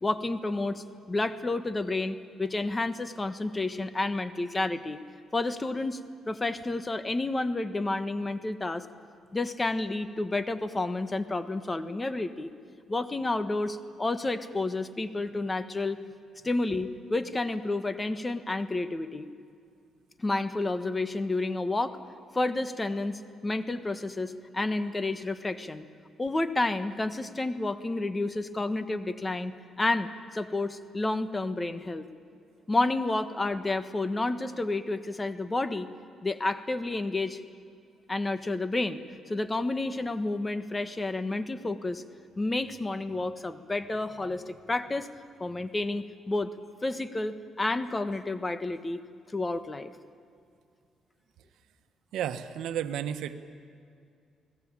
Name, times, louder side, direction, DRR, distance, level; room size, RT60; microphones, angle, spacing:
voice 1, 0.0-5.0 5.3-6.0 6.3-8.9 9.3-12.5 12.9-16.0 16.4-19.3 20.2-22.0 22.3-25.8 26.2-32.0 32.7-35.9 36.2-37.4 38.1-39.0 39.3-42.0 42.4-45.1 45.4-46.5 46.8-49.0 49.3-49.9, left 2 dB, 20° left, 11 dB, 1.4 m, -30 dB
voice 2, 52.1-53.4, right 10 dB, 85° right, 9 dB, 1.3 m, -32 dB
29.5 x 19.5 x 8.8 m, 2.4 s
cardioid pair, 90°, 0 cm